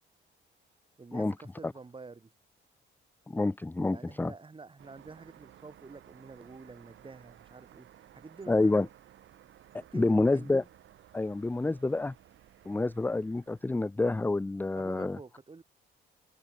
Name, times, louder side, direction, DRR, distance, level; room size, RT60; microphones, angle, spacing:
voice 1, 1.0-2.3 3.9-8.9 9.8-10.6 14.7-15.6, right 4 dB, 25° right, 3.0 m, -48 dB
voice 2, 3.3-4.3 8.5-8.9 9.9-10.6 11.1-12.1 12.7-15.2, left 2 dB, 10° left, 0.5 m, -28 dB
sound 1, 4.8-13.9, right 12 dB, 75° right, 4.1 m, -57 dB
cardioid pair, 90°, 20 cm